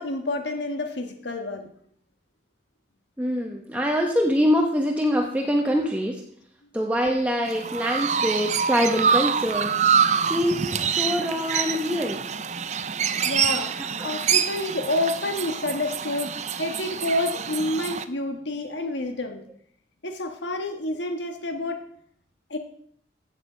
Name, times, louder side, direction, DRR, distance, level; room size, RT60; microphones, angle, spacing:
voice 1, 0.0-1.7 5.8-5.9 13.2-13.8 14.0-19.4 20.0-21.8 22.5-22.6, left 2 dB, 80° left, 5 dB, 1.5 m, -29 dB
voice 2, 3.2-6.2 6.7-9.8 10.3-12.3 14.0-14.1, equal, 10° right, 1 dB, 0.9 m, -24 dB
Chirp tweet, 7.5-18.0, right 7 dB, 40° right, 0.6 m, -26 dB
15.0 x 8.1 x 5.1 m, 0.63 s
head